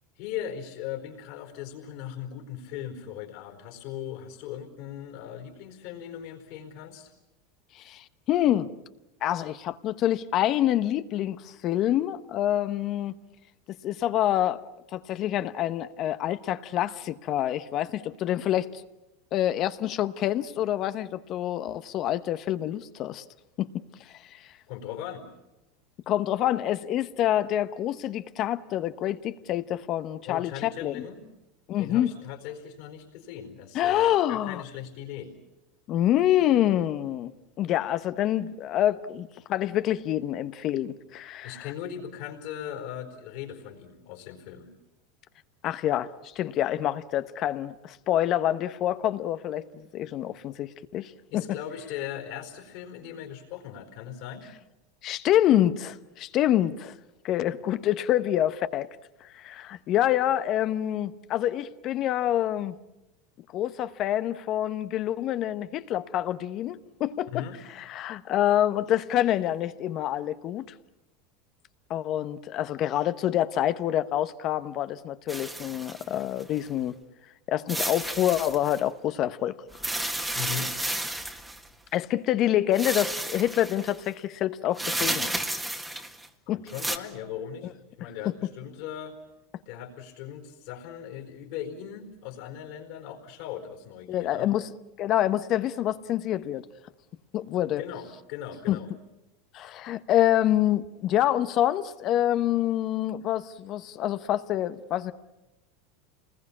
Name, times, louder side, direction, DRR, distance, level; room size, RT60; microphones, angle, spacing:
voice 1, 0.2-7.1 24.7-25.3 30.2-31.3 31.8-35.3 41.4-44.7 51.3-54.5 67.3-67.6 80.3-80.8 86.5-89.2 89.7-94.5 97.8-98.9, left 10 dB, 65° left, 4.3 m, -39 dB
voice 2, 7.7-8.7 9.2-13.1 13.8-18.8 19.3-23.2 23.6-23.7 24.1-24.4 26.1-31.0 31.7-32.1 33.7-34.6 35.9-37.3 37.6-41.7 45.6-51.4 55.0-56.9 57.2-59.0 59.3-62.7 63.5-67.4 67.8-70.7 71.9-77.0 77.5-79.6 79.8-80.1 81.9-85.3 86.5-86.6 94.1-94.7 95.0-96.6 97.3-97.8 98.7-98.8 99.5-105.1, left 12 dB, 45° left, 1.0 m, -27 dB
sound 1, 75.3-76.6 77.7-78.8 79.7-81.7 82.7-84.0 84.8-86.3 86.7-87.0, right 1 dB, 10° right, 1.8 m, -32 dB
27.5 x 20.5 x 8.6 m
supercardioid pair, 110°, 0 cm